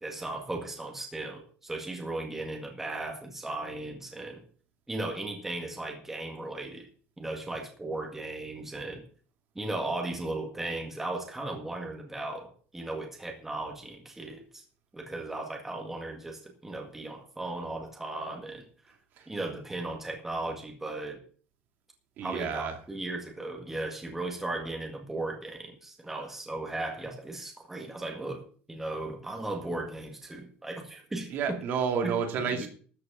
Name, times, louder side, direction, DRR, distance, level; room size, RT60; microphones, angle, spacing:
voice 1, 0.0-4.4 4.9-6.9 7.2-9.0 9.6-14.6 14.9-18.6 19.3-21.2 22.2-31.3 32.0-32.1 32.5-32.7, right 2 dB, 5° right, 2 dB, 1.9 m, -36 dB
voice 2, 22.2-22.8 31.3-32.7, right 6 dB, 45° right, 5 dB, 2.4 m, -30 dB
13.5 x 6.5 x 7.5 m, 0.43 s
cardioid pair, 175°, 5 cm